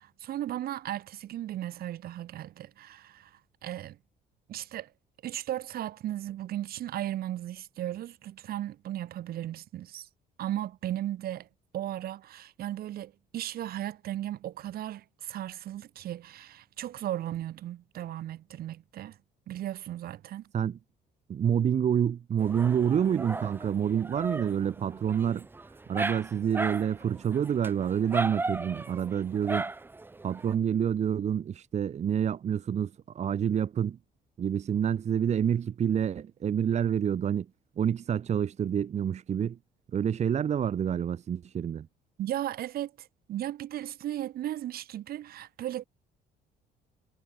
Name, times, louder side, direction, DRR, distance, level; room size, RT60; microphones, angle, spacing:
voice 1, 0.0-4.0 4.5-4.9 5.2-10.1 10.4-11.5 11.7-19.2 19.5-20.5 42.2-45.8, right 12 dB, 65° right, 2.1 m, -36 dB
voice 2, 21.3-25.5 25.9-29.7 30.2-34.0 34.4-37.5 37.8-39.6 39.9-41.9, right 8 dB, 40° right, 1.1 m, -28 dB
Dog, 22.4-30.5, right 3 dB, 10° right, 0.7 m, -36 dB
cardioid pair, 110°, 17 cm